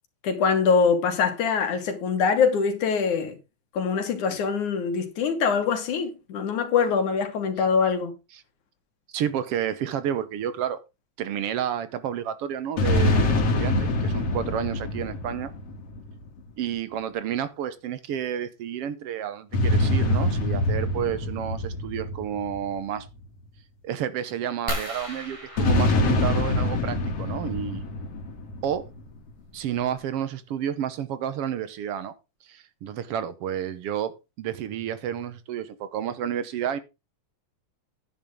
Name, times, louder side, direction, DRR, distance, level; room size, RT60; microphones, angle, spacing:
voice 1, 0.2-3.4 3.7-8.1, left 5 dB, 85° left, 3.4 m, -23 dB
voice 2, 9.1-10.8 11.2-15.5 16.6-23.1 23.8-27.9 28.6-28.8 29.5-32.1 32.4-36.8, right 9 dB, 65° right, 1.7 m, -30 dB
sound 1, 12.8-16.4 19.5-23.2 25.6-29.0, left 2 dB, 60° left, 3.1 m, -25 dB
sound 2, 24.7-27.0 28.7-28.8 29.4-29.5 29.8-30.0, equal, 10° right, 2.4 m, -36 dB
10.5 x 9.5 x 3.7 m
omnidirectional pair, 3.4 m